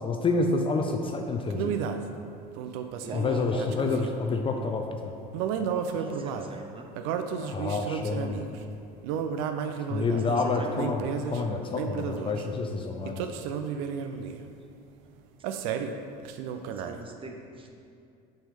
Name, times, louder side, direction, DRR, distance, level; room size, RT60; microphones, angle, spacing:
voice 1, 0.0-1.8 3.1-5.1 7.4-8.4 9.9-13.2, left 3 dB, 25° left, 3 dB, 0.5 m, -28 dB
sound 1, 1.5-2.1 2.6-4.2 5.3-6.5 6.9-8.6 9.0-10.3 10.8-11.4 11.8-12.4 13.0-14.4 15.4-16.0 16.2-17.0, right 7 dB, 70° right, 0.5 m, -32 dB
voice 2, 3.0-3.9 5.9-6.9 10.3-11.1 14.0-14.1 16.5-17.7, right 2 dB, 25° right, 2 dB, 0.8 m, -40 dB
6.0 x 5.5 x 3.3 m, 2.5 s
hypercardioid pair, 85°, 20 cm